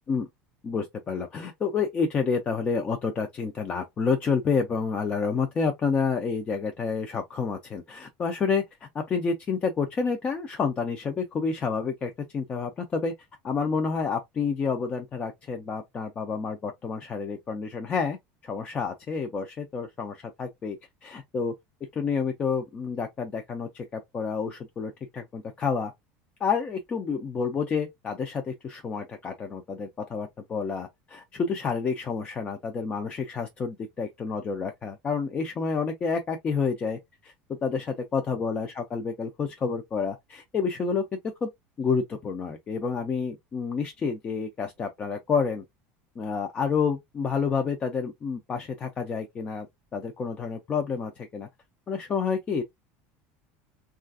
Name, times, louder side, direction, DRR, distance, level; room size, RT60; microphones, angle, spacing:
voice 1, 0.6-13.1 13.4-21.5 21.9-25.9 26.4-37.3 37.6-41.5 41.8-45.6 46.2-49.7 49.9-51.5 51.9-52.6, left 5 dB, 25° left, 0.4 m, -29 dB
3.2 x 2.3 x 2.3 m
cardioid pair, 155°, 5 cm